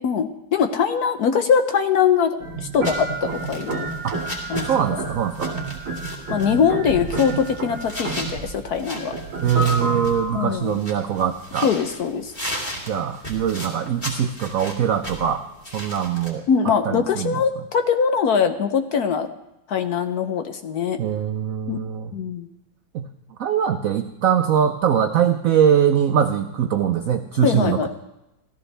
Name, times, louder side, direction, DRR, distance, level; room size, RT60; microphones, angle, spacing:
voice 1, 0.0-3.9 4.5-5.0 6.3-9.1 10.3-10.8 11.6-12.3 16.5-19.3 19.7-21.0 21.7-21.8 22.1-22.5 27.4-27.9, left 7 dB, 65° left, 8 dB, 1.0 m, -22 dB
sound 1, 2.4-10.5, right 3 dB, 55° right, 2.2 m, -29 dB
sound 2, 2.8-16.3, equal, 25° left, 2.8 m, -37 dB
voice 2, 4.6-5.5 9.4-11.7 12.8-15.4 15.7-16.4 16.8-17.3 21.0-22.1 22.9-23.1 23.4-27.9, right 9 dB, 80° right, 7 dB, 0.7 m, -22 dB
15.5 x 14.0 x 3.3 m, 0.93 s
omnidirectional pair, 2.1 m